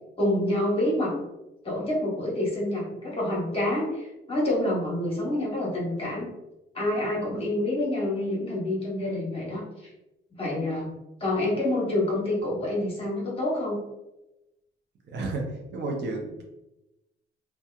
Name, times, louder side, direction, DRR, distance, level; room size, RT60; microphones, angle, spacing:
voice 1, 0.2-1.1 1.6-6.3 6.7-9.6 10.4-10.9 11.2-13.8, left 1 dB, 30° left, -4 dB, 1.2 m, -27 dB
voice 2, 15.1-16.4, right 2 dB, 60° right, 1 dB, 0.6 m, -32 dB
2.7 x 2.3 x 2.3 m, 0.95 s
cardioid pair, 90°, 20 cm